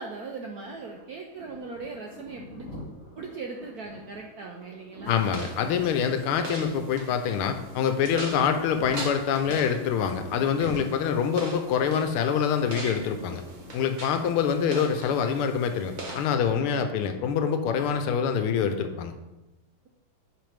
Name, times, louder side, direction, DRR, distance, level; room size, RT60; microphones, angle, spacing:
voice 1, 0.0-2.8 3.2-5.4 14.1-14.6, right 4 dB, 75° right, 1 dB, 0.8 m, -39 dB
sound 1, 0.6-19.1, left 1 dB, 40° left, 3.3 m, -47 dB
voice 2, 5.1-13.4 13.7-19.1, left 7 dB, 90° left, 7 dB, 1.6 m, -25 dB
sound 2, 5.1-16.3, right 2 dB, 50° right, 0.5 m, -41 dB
9.3 x 4.9 x 3.4 m, 1.0 s
omnidirectional pair, 2.4 m